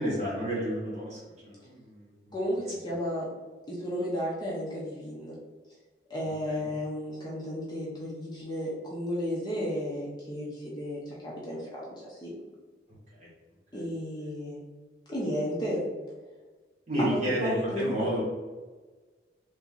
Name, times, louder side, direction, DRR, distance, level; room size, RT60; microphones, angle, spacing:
voice 1, 0.0-2.3 6.5-6.7 13.2-13.3 13.7-13.8 16.9-18.2, right 1 dB, 40° right, -7 dB, 1.4 m, -31 dB
voice 2, 2.3-3.3 3.7-5.3 6.1-12.4 13.7-14.6 15.1-15.9 17.0-18.1, equal, 25° left, -5 dB, 0.7 m, -33 dB
3.0 x 2.8 x 3.7 m, 1.3 s
head